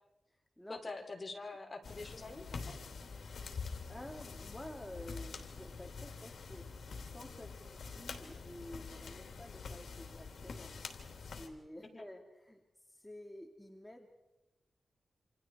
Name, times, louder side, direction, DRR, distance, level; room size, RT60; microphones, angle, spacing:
voice 1, 0.7-2.7 11.8-12.1, left 3 dB, 30° left, 3 dB, 3.5 m, -45 dB
sound 1, 1.8-11.5, left 4 dB, 75° left, 3.1 m, -46 dB
voice 2, 3.9-10.7 11.2-12.6 12.9-14.1, left 1 dB, 5° left, 2 dB, 2.1 m, -51 dB
28.0 x 27.5 x 4.7 m, 0.99 s
wide cardioid pair, 130°, 0 cm